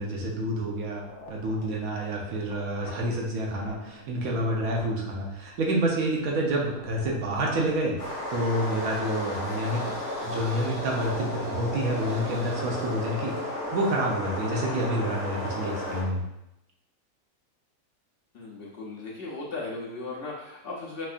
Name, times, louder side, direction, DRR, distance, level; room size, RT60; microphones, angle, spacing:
voice 1, 0.0-8.0 8.3-9.8 10.2-16.2, right 1 dB, 65° right, -2 dB, 1.1 m, -28 dB
sound 1, 0.9-12.9, left 2 dB, 80° left, 1.2 m, -47 dB
sound 2, 8.0-16.0, left 1 dB, 20° left, 1.4 m, -33 dB
voice 2, 18.3-21.1, left 3 dB, 50° left, -5 dB, 0.7 m, -37 dB
4.4 x 2.6 x 2.5 m, 0.86 s
omnidirectional pair, 1.7 m